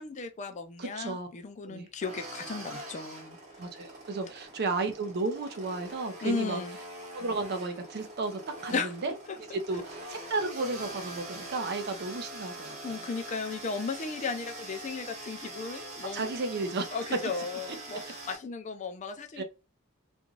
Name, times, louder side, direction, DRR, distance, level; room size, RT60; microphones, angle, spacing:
voice 1, 0.0-3.4 6.2-6.8 8.7-8.9 9.3-9.6 12.8-16.3 16.9-19.4, left 4 dB, 35° left, 0.4 m, -35 dB
voice 2, 0.8-1.3 1.6-1.9 3.6-6.6 7.1-8.8 9.0-9.1 9.5-12.9 16.1-16.9 19.4-19.5, right 3 dB, 50° right, 0.5 m, -33 dB
sound 1, 2.0-18.4, right 1 dB, 35° right, 1.0 m, -43 dB
2.5 x 2.3 x 3.0 m
head